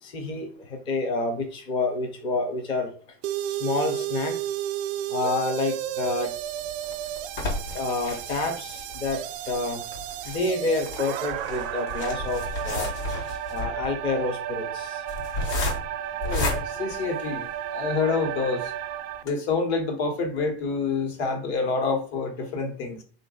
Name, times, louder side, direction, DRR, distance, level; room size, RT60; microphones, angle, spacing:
voice 1, 0.0-2.9 3.5-4.4 5.1-6.3 7.7-9.9 10.3-12.9 13.5-15.0, left 3 dB, 15° left, 3 dB, 0.4 m, -28 dB
sound 1, 3.2-19.2, right 11 dB, 60° right, 0.4 m, -33 dB
sound 2, 6.4-17.7 18.3-18.4 18.7-18.8 19.1-19.3, left 2 dB, 55° left, 1.1 m, -33 dB
voice 2, 16.2-18.7 19.2-23.0, left 4 dB, 75° left, 4 dB, 1.3 m, -27 dB
4.0 x 2.5 x 3.7 m, 0.39 s
supercardioid pair, 160°, 32 cm